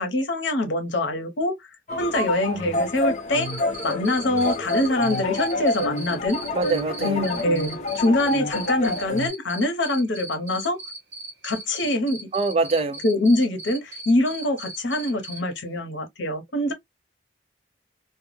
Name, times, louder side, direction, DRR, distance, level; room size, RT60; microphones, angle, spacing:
voice 1, 0.0-1.5 2.0-3.5 3.8-6.4 7.0-10.8 11.4-12.3 13.0-16.7, left 1 dB, 70° left, 0.8 m, -24 dB
sound 1, 1.9-9.3, left 2 dB, 35° left, 0.6 m, -28 dB
Cricket, 3.4-15.4, right 3 dB, 75° right, 1.0 m, -37 dB
voice 2, 6.5-7.3 12.3-13.0, right 3 dB, 30° right, 0.3 m, -24 dB
2.2 x 2.1 x 3.0 m
head